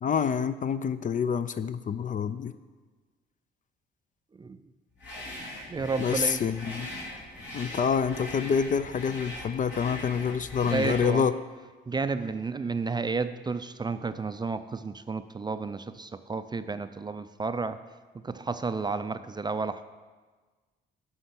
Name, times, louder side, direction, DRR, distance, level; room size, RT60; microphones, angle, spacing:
voice 1, 0.0-2.5 6.0-6.9 7.5-11.3, left 7 dB, 40° left, 13 dB, 0.4 m, -27 dB
sound 1, 5.0-11.1, left 1 dB, 60° left, 3.2 m, -40 dB
voice 2, 5.7-6.4 10.6-11.3 11.9-17.8 18.2-19.8, right 4 dB, 20° right, 11 dB, 0.4 m, -31 dB
9.9 x 5.6 x 6.0 m, 1.4 s
cardioid pair, 90°, 20 cm